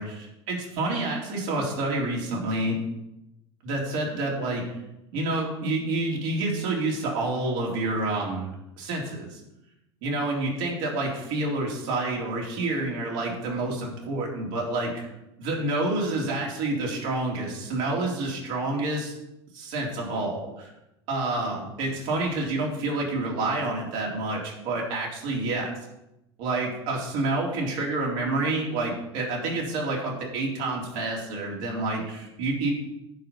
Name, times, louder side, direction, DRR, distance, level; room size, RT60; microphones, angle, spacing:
voice 1, 0.0-2.8 3.6-4.6 5.1-9.4 10.0-15.1 15.4-19.1 19.5-20.7 21.1-25.7 26.4-32.7, right 2 dB, 55° right, -2 dB, 3.8 m, -28 dB
10.5 x 5.3 x 8.3 m, 0.89 s
hypercardioid pair, 80°, 14 cm